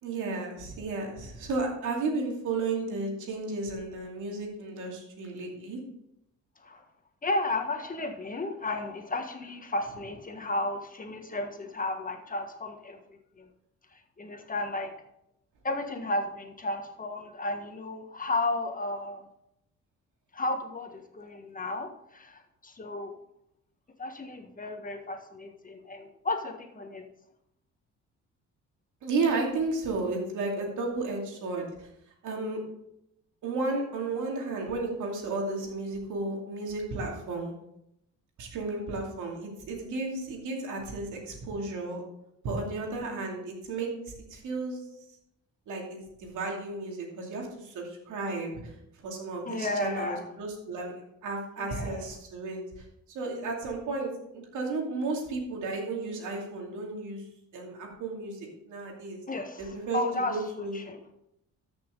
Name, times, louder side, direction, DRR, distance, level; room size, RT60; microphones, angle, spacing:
voice 1, 0.0-5.8 29.0-31.9 32.2-32.6 33.4-37.5 38.4-42.0 42.4-43.9 44.3-44.8 45.7-48.7 49.0-50.9 51.2-52.6 53.1-57.2 57.5-59.2 59.6-60.0 60.3-60.8, right 3 dB, 80° right, 0 dB, 2.7 m, -33 dB
voice 2, 7.2-13.5 13.9-14.9 15.6-19.2 20.3-23.2 24.0-27.0 49.4-50.3 51.6-52.1 59.3-61.0, left 2 dB, 25° left, 5 dB, 1.5 m, -33 dB
13.5 x 6.2 x 3.9 m, 0.80 s
cardioid pair, 90°, 30 cm